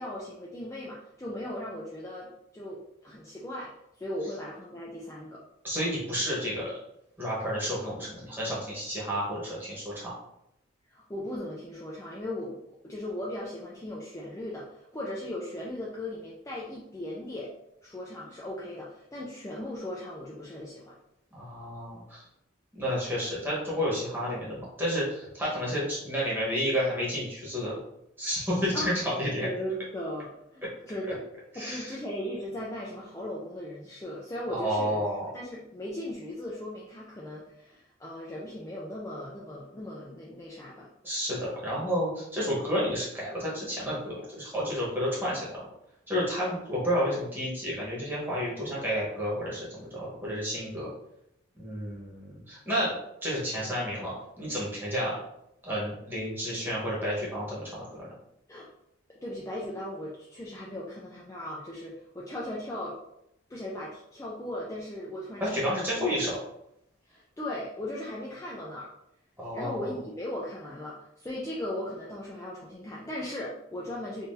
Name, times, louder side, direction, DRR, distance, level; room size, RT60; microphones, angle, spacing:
voice 1, 0.0-5.4 10.9-17.5 17.8-21.0 28.7-28.9 29.4-31.2 31.5-35.0 35.3-40.9 58.5-58.7 59.1-63.0 63.5-65.8 67.1-68.9 69.5-74.3, left 1 dB, 15° left, -5 dB, 0.4 m, -38 dB
voice 2, 5.6-6.7 7.2-10.1 21.3-22.2 22.7-27.8 28.2-29.5 31.6-31.9 34.5-35.3 41.0-45.6 46.1-50.9 51.6-52.9 53.2-55.2 55.6-58.1 65.4-66.4 69.4-69.9, equal, 10° right, -7 dB, 1.2 m, -31 dB
3.7 x 2.7 x 2.6 m, 0.80 s
head